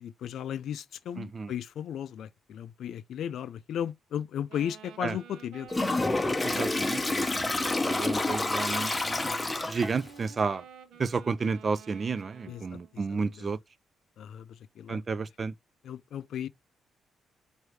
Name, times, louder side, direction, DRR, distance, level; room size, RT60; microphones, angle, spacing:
voice 1, 0.0-5.9 12.5-12.8 13.3-13.5 14.2-15.0 15.8-16.5, left 9 dB, 75° left, 0.4 m, -36 dB
voice 2, 1.2-1.5 5.0-5.2 6.4-10.6 11.0-13.6 14.9-15.5, right 4 dB, 40° right, 0.4 m, -32 dB
Wind instrument woodwind instrument, 4.5-13.0, right 6 dB, 85° right, 0.9 m, -50 dB
Toilet flush, 5.7-10.1, left 2 dB, 20° left, 0.7 m, -28 dB
4.7 x 2.6 x 3.2 m
cardioid pair, 85°, 0 cm